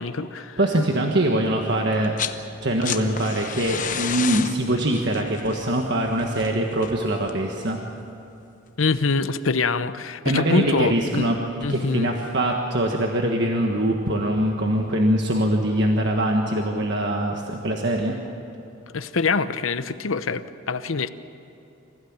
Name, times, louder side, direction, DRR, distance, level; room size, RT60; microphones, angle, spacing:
voice 1, 0.0-0.6 8.8-11.3 11.6-12.1 18.9-21.1, left 4 dB, 75° left, 12 dB, 0.9 m, -25 dB
voice 2, 0.6-2.1 2.6-7.8 10.2-18.2, right 1 dB, 55° right, 1 dB, 1.6 m, -23 dB
sound 1, 1.9-2.4 2.7-7.5 8.8-8.9, left 7 dB, 40° left, 1.0 m, -31 dB
26.0 x 16.0 x 8.9 m, 3.0 s
head